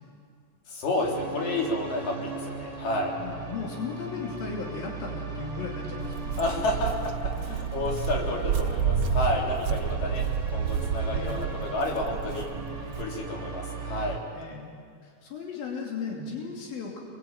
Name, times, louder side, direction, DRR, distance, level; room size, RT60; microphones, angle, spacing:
voice 1, 0.7-3.1 6.4-7.1 7.4-10.2 10.5-12.5 13.0-14.2, left 2 dB, 70° left, -1 dB, 5.1 m, -30 dB
sound 1, 1.0-14.2, right 4 dB, 10° right, 3.7 m, -37 dB
voice 2, 3.1-6.4 7.5-7.6 11.1-11.4 14.3-14.7 15.0-17.0, left 4 dB, 85° left, -2 dB, 4.7 m, -36 dB
Walk footsteps, 6.0-13.0, right 7 dB, 65° right, 1.4 m, -30 dB
29.5 x 22.0 x 8.8 m, 2.1 s
omnidirectional pair, 4.1 m